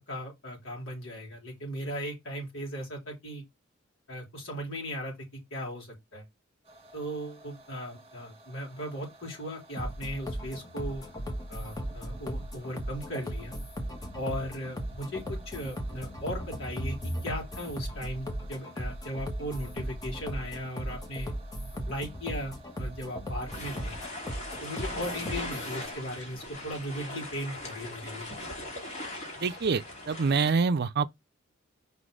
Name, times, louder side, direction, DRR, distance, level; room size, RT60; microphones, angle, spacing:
voice 1, 0.1-3.4 4.1-5.1 5.5-6.2 6.9-11.0 11.5-13.6 14.1-21.3 21.9-24.0 24.6-28.3, equal, 70° left, 4.1 m, -37 dB
sound 1, 6.6-26.0, right 1 dB, 30° right, 1.8 m, -55 dB
sound 2, 9.8-25.7, equal, 20° left, 1.3 m, -37 dB
sound 3, 23.5-30.5, left 1 dB, 35° left, 2.6 m, -39 dB
voice 2, 29.4-31.1, right 5 dB, 55° right, 0.5 m, -26 dB
5.3 x 4.1 x 4.9 m
head